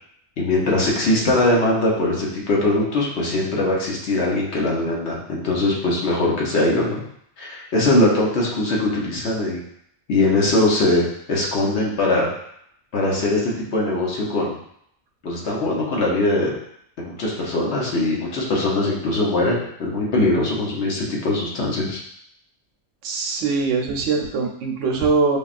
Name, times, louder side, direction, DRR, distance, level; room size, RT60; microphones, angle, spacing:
voice 1, 0.4-7.0 7.4-9.6 10.1-11.0 11.3-12.3 12.9-14.5 15.2-16.5 17.0-22.0, left 2 dB, 65° left, -3 dB, 1.1 m, -21 dB
voice 2, 23.0-25.4, right 4 dB, 80° right, 2 dB, 1.0 m, -22 dB
5.4 x 2.3 x 2.4 m, 0.71 s
omnidirectional pair, 1.3 m